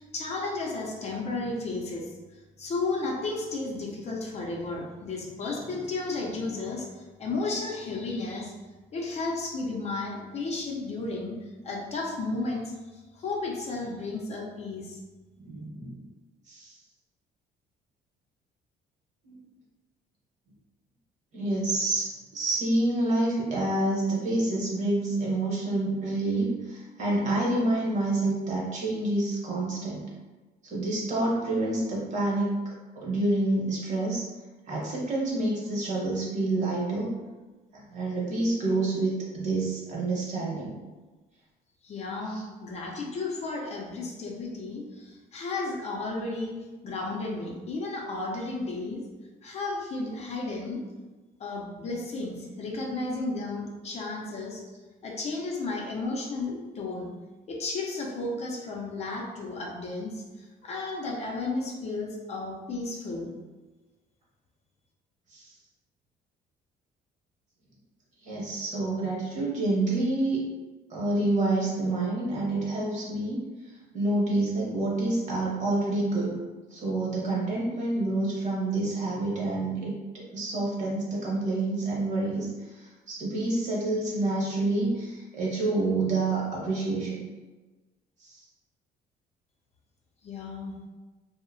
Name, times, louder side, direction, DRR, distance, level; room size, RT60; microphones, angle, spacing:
voice 1, 0.0-8.5 8.9-11.4 11.6-15.0 41.8-46.6 46.8-49.0 49.4-50.8 51.4-54.6 55.0-57.1 57.5-63.3 90.2-90.8, left 3 dB, 40° left, -1 dB, 0.5 m, -33 dB
voice 2, 15.4-16.0 16.5-16.8 19.2-19.4 21.3-30.1 30.7-32.6 33.0-34.2 34.7-37.1 37.7-40.8 42.3-42.4 65.3-65.5 68.2-70.4 70.9-73.4 73.9-76.4 76.7-87.2 88.2-88.4, right 2 dB, 45° right, -4 dB, 1.0 m, -28 dB
2.7 x 2.0 x 2.6 m, 1.2 s
cardioid pair, 110°, 17 cm